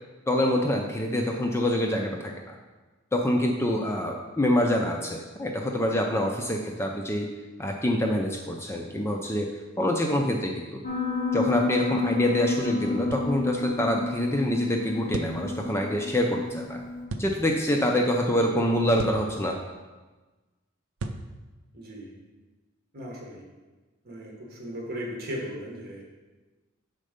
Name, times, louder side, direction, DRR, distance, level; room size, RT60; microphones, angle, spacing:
voice 1, 0.3-2.5 3.1-7.3 7.6-9.5 9.8-10.8 11.3-16.8 17.2-19.6, left 1 dB, 15° left, 1 dB, 0.4 m, -26 dB
Piano, 10.8-17.0, left 3 dB, 35° left, 1.1 m, -30 dB
sound 1, 13.1-13.3 15.1-15.4 17.1-17.3 19.0-19.3 21.0-21.3, right 3 dB, 85° right, 0.5 m, -34 dB
voice 2, 21.7-22.1 22.9-23.4 24.0-26.0, equal, 50° right, -1 dB, 1.3 m, -37 dB
6.5 x 4.3 x 5.0 m, 1.2 s
head